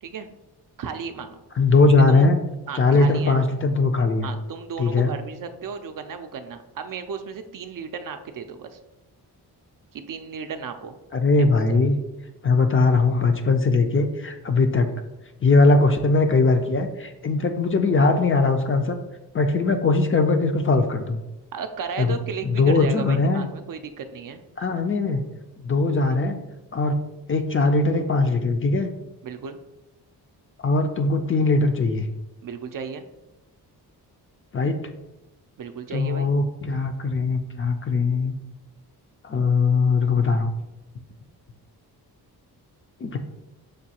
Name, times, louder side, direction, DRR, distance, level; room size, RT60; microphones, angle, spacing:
voice 1, 0.8-1.4 2.1-2.3 2.7-3.4 4.2-8.8 9.9-11.0 11.4-11.8 21.5-24.4 29.2-29.6 32.4-33.0 35.6-36.3, right 6 dB, 55° right, 7 dB, 0.5 m, -34 dB
voice 2, 1.6-2.4 2.7-4.3 4.8-5.1 11.1-12.0 12.4-14.9 15.4-19.0 19.3-21.2 22.0-22.1 22.4-23.5 24.6-25.2 25.6-26.4 26.7-27.0 27.3-28.9 30.6-32.1 34.5-34.8 35.9-38.3 39.2-40.5 43.0-43.2, left 3 dB, 30° left, 6 dB, 0.4 m, -20 dB
6.4 x 2.3 x 2.8 m, 0.98 s
cardioid pair, 65°, 41 cm